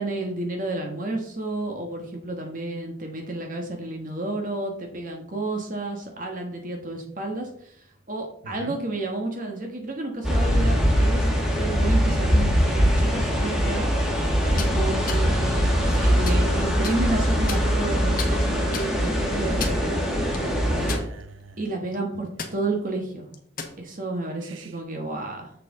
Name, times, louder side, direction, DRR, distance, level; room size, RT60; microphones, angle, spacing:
voice 1, 0.0-20.0 21.6-23.3 23.8-25.5, right 2 dB, 40° right, 2 dB, 1.3 m, -31 dB
voice 2, 8.4-8.8 14.9-15.2 20.5-21.6 24.4-24.7, right 2 dB, 85° right, 9 dB, 1.0 m, -42 dB
sound 1, 10.2-21.0, equal, ahead, 1.7 m, -22 dB
sound 2, 14.4-14.7 15.1-15.2 15.8-16.4 16.8-17.0 17.5-17.9 18.2-18.3 18.7-18.9 19.4-19.9 20.3-20.4 20.9-21.4 21.8-22.0 22.4-22.5 23.3-23.8, left 5 dB, 45° left, 1.1 m, -33 dB
7.3 x 6.7 x 3.6 m, 0.66 s
head